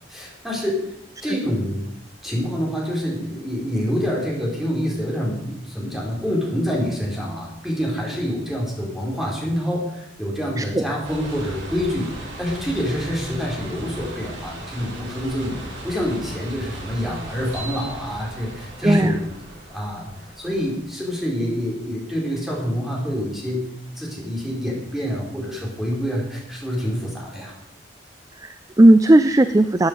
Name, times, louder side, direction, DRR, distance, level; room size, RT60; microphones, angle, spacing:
voice 1, 0.1-0.8 1.2-1.8 2.2-19.3 19.7-20.1 20.4-27.5, equal, ahead, -3 dB, 4.2 m, -26 dB
sound 1, 11.0-20.8, right 1 dB, 85° right, 5.3 m, -37 dB
voice 2, 18.8-19.2 28.4-29.9, right 1 dB, 20° right, 11 dB, 0.4 m, -15 dB
14.5 x 8.9 x 5.3 m, 0.79 s
head